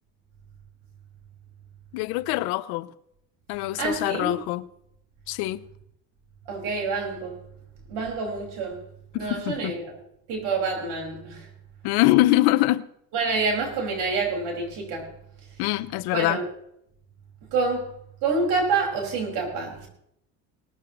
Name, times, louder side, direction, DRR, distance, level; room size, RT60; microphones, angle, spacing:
voice 1, 1.9-2.9 3.5-4.6 5.3-5.6 9.1-9.7 11.8-12.9 15.6-16.4, left 17 dB, 80° left, 0.8 m, -23 dB
voice 2, 3.8-4.3 6.5-7.4 7.9-8.8 9.1-9.9 10.3-11.5 13.1-15.1 16.1-16.4 17.5-17.9 18.2-19.9, right 4 dB, 80° right, 5.8 m, -27 dB
19.0 x 14.0 x 3.2 m
cardioid pair, 105°, 38 cm